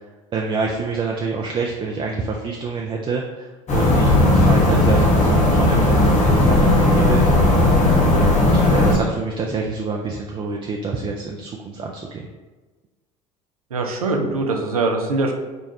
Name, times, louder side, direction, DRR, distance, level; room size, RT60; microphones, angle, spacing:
voice 1, 0.3-7.3 8.0-12.3, right 4 dB, 30° right, 0 dB, 0.4 m, -27 dB
sound 1, 3.7-9.0, left 1 dB, 40° left, 1.1 m, -16 dB
voice 2, 13.7-15.3, right 3 dB, 90° right, 2 dB, 0.5 m, -22 dB
5.2 x 2.3 x 2.8 m, 1.3 s
hypercardioid pair, 70°, 18 cm